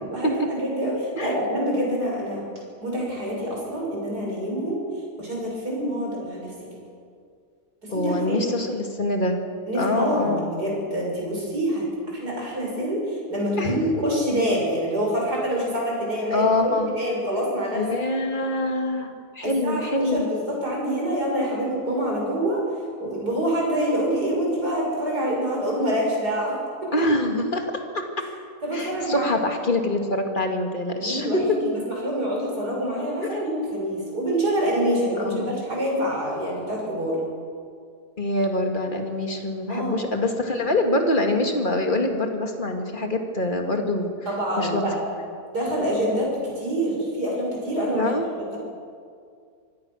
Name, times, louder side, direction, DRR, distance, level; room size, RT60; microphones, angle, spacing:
voice 1, 0.0-2.4 2.8-4.8 5.2-6.5 7.8-8.5 9.7-11.8 12.1-17.8 19.4-22.6 23.0-26.6 26.8-26.9 28.6-29.3 31.0-31.7 32.0-37.2 39.7-40.1 44.3-45.0 45.5-48.1 48.5-48.6, equal, 70° right, -3 dB, 6.9 m, -26 dB
voice 2, 7.9-9.4 9.8-10.4 13.6-13.8 16.3-16.9 17.7-20.2 26.9-27.7 27.9-28.0 28.7-31.4 33.2-33.4 35.2-35.6 38.2-44.1 44.6-44.8 47.9-48.3, left 2 dB, 30° left, 4 dB, 2.2 m, -25 dB
24.5 x 17.0 x 6.4 m, 2.2 s
omnidirectional pair, 1.8 m